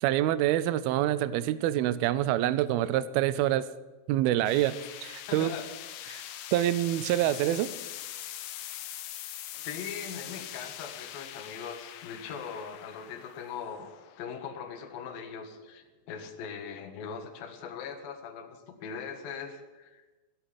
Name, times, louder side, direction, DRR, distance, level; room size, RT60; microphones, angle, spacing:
voice 1, 0.0-3.7 4.1-5.5 6.1-6.2 6.5-7.7, right 13 dB, 80° right, 16 dB, 2.3 m, -26 dB
sound 1, 4.4-15.6, left 12 dB, 85° left, 1.9 m, -43 dB
voice 2, 5.3-5.7 6.0-6.3 9.5-13.9 14.2-20.2, left 6 dB, 65° left, 4 dB, 3.0 m, -40 dB
17.0 x 8.2 x 9.7 m, 1.2 s
omnidirectional pair, 4.9 m